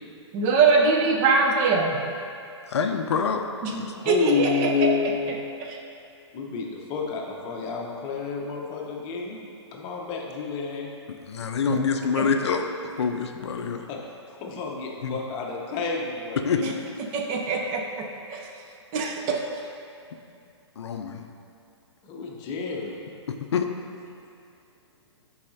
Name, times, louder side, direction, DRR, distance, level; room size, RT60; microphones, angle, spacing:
voice 1, 0.3-2.0 3.6-4.9 5.6-5.8 11.7-11.8 12.2-12.3 16.6-16.7 17.0-17.8 18.3-18.5 18.9-19.4, right 4 dB, 35° right, 0 dB, 0.7 m, -23 dB
voice 2, 2.7-3.9 11.1-13.9 15.0-15.2 16.4-16.7 20.8-21.3 23.3-23.7, left 5 dB, 65° left, 5 dB, 0.5 m, -26 dB
voice 3, 3.9-5.4 6.3-10.9 13.5-14.0 14.4-16.4 22.1-23.0, left 5 dB, 30° left, -1 dB, 0.9 m, -29 dB
8.4 x 4.8 x 2.7 m, 2.5 s
hypercardioid pair, 125°, 15 cm